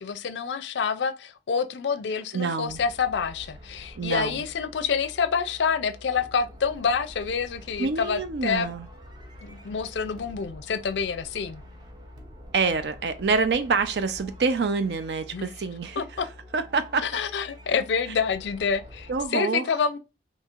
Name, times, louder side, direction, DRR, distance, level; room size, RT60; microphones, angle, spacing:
voice 1, 0.0-8.7 9.4-11.6 15.3-15.5 16.0-16.3 17.0-20.0, left 6 dB, 80° left, 0.4 m, -27 dB
voice 2, 2.3-2.8 4.0-4.4 7.8-8.9 12.5-16.0 16.5-17.1 19.1-19.6, right 4 dB, 70° right, 0.5 m, -26 dB
sound 1, 2.7-19.3, left 1 dB, 25° right, 0.6 m, -47 dB
4.3 x 2.8 x 2.4 m
head